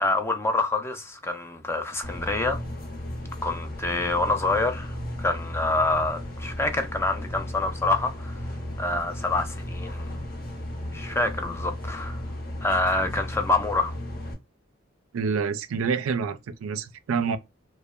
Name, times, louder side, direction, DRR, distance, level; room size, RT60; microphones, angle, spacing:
voice 1, 0.0-2.6 3.4-4.9 5.2-8.4 8.8-10.1 10.9-12.2 12.6-13.9, left 2 dB, 10° left, 0.3 m, -26 dB
sound 1, 2.0-14.3, left 1 dB, 45° left, 0.7 m, -35 dB
voice 2, 15.1-17.4, right 5 dB, 85° right, 0.4 m, -27 dB
2.7 x 2.1 x 2.3 m
head